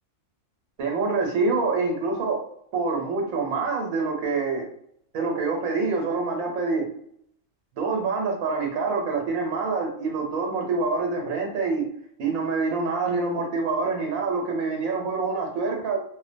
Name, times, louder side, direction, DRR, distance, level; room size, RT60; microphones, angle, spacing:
voice 1, 0.8-2.4 2.7-4.7 5.1-6.9 7.8-11.9 12.2-16.0, right 4 dB, 80° right, 0 dB, 1.1 m, -26 dB
2.5 x 2.1 x 2.5 m, 0.69 s
omnidirectional pair, 1.4 m